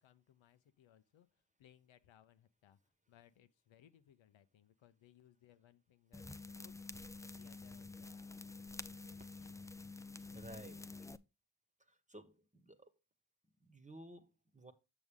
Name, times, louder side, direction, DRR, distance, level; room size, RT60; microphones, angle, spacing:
voice 1, 0.0-6.8 7.2-9.6, left 11 dB, 85° left, 0.7 m, -67 dB
sound 1, 6.1-11.2, left 3 dB, 5° left, 0.5 m, -49 dB
voice 2, 10.3-10.9 11.9-12.9 13.6-14.7, right 1 dB, 15° right, 1.2 m, -54 dB
7.0 x 6.3 x 3.6 m
cardioid pair, 40°, 45 cm